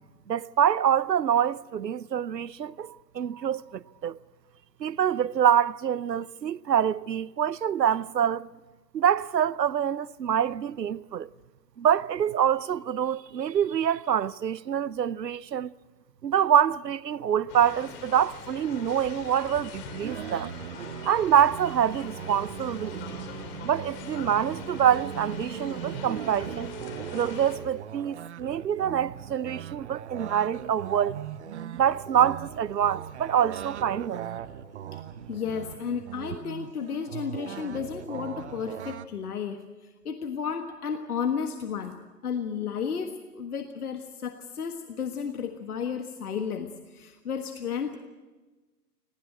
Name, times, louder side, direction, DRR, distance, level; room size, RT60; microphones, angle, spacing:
voice 1, 0.3-4.2 4.8-8.5 8.9-11.3 11.8-15.7 16.2-20.5 21.0-23.2 23.6-26.7 27.1-31.2 31.7-34.3, right 9 dB, 85° right, 0.7 m, -25 dB
sound 1, 17.5-27.6, left 6 dB, 35° left, 2.9 m, -43 dB
sound 2, 19.8-39.1, right 9 dB, 45° right, 0.8 m, -40 dB
sound 3, 21.7-27.7, right 6 dB, 30° right, 4.8 m, -42 dB
voice 2, 31.4-31.8 34.9-35.0 35.3-48.0, left 7 dB, 60° left, 1.6 m, -33 dB
19.5 x 18.0 x 8.7 m
figure-of-eight pair, 125°, 49 cm